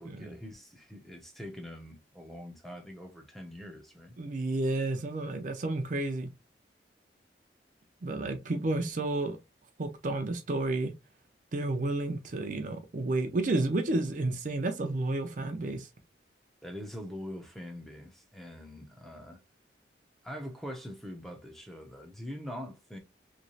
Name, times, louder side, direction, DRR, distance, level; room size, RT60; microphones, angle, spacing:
voice 1, 0.0-4.2 16.6-19.4 20.2-23.0, equal, ahead, 0.6 m, -43 dB
voice 2, 4.2-6.3 8.0-9.4 9.8-10.9 11.5-15.9, right 2 dB, 45° right, 0.5 m, -31 dB
3.1 x 2.9 x 2.7 m
head